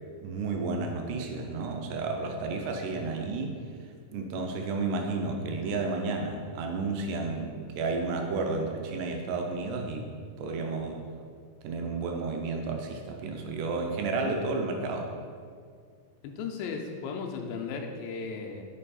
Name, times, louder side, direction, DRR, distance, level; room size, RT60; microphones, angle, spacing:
voice 1, 0.2-3.6 4.1-10.1 10.4-11.1 11.6-15.1, right 3 dB, 80° right, 2 dB, 2.0 m, -32 dB
voice 2, 16.2-18.6, left 5 dB, 85° left, 2 dB, 2.3 m, -36 dB
5.5 x 4.5 x 4.1 m, 2.1 s
omnidirectional pair, 4.0 m